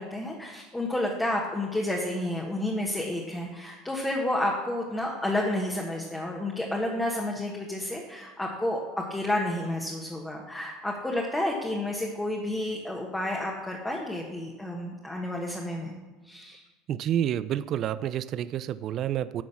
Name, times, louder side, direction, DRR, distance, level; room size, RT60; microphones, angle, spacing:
voice 1, 0.0-16.0 16.2-16.6, left 1 dB, 10° left, -1 dB, 1.3 m, -30 dB
voice 2, 16.9-19.4, right 10 dB, 50° right, 16 dB, 0.3 m, -29 dB
10.5 x 4.0 x 7.1 m, 1.3 s
supercardioid pair, 105°, 0 cm